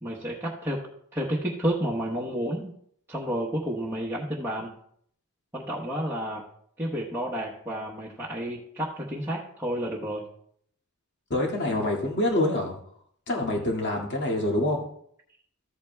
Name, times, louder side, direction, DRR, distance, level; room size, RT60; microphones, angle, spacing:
voice 1, 0.0-2.7 3.1-4.7 5.5-6.5 6.8-10.3, equal, 10° right, -6 dB, 1.0 m, -31 dB
voice 2, 11.3-12.8 13.3-14.8, left 1 dB, 55° left, -1 dB, 2.1 m, -26 dB
14.0 x 8.6 x 2.3 m, 0.66 s
head